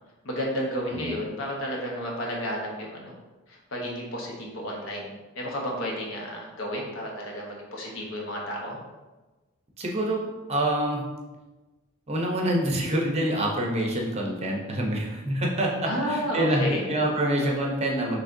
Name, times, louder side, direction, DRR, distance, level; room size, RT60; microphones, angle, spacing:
voice 1, 0.2-3.1 3.5-5.0 5.3-8.8 15.9-16.8, equal, 60° left, -1 dB, 1.0 m, -31 dB
voice 2, 9.8-10.2 10.5-11.0 12.1-18.2, right 1 dB, 30° right, -1 dB, 0.7 m, -26 dB
6.1 x 3.3 x 2.6 m, 1.2 s
head